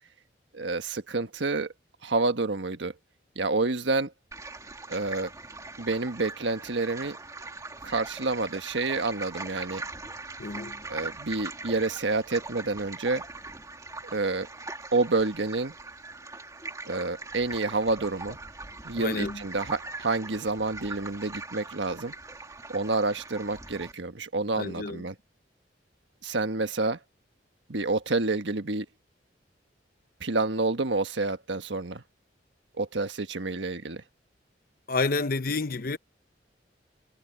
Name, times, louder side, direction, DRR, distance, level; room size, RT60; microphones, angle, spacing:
voice 1, 0.5-1.7 2.0-2.9 3.3-4.1 4.9-5.3 5.8-7.2 7.8-9.8 10.9-13.2 14.1-14.5 14.9-15.7 16.9-18.4 18.8-22.1 22.7-25.1 26.2-27.0 27.7-28.9 30.2-32.0 32.8-34.0, right 3 dB, 85° right, 1.4 m, -28 dB
sound 1, 4.3-23.9, right 3 dB, 20° right, 2.5 m, -41 dB
voice 2, 10.4-10.8 18.9-19.5 24.6-25.0 34.9-36.0, left 3 dB, 50° left, 0.9 m, -29 dB
head